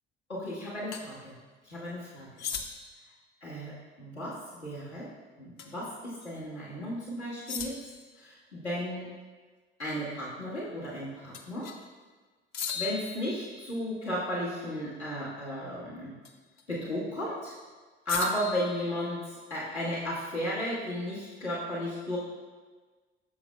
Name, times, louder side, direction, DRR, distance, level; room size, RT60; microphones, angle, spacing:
voice 1, 0.3-1.3 1.6-2.5 3.4-4.3 4.6-5.1 5.4-7.7 8.2-9.1 9.8-11.7 12.7-16.1 16.7-17.5 18.0-22.2, equal, 85° left, -9 dB, 1.5 m, -34 dB
sound 1, 0.9-1.1 2.4-3.0 5.6-5.8 6.2-6.3 7.5-8.1 11.3-11.9 12.5-13.9 16.2-16.6 18.1-19.5, left 6 dB, 55° left, 0.7 m, -38 dB
8.6 x 6.6 x 2.2 m, 1.4 s
figure-of-eight pair, 50°, 33 cm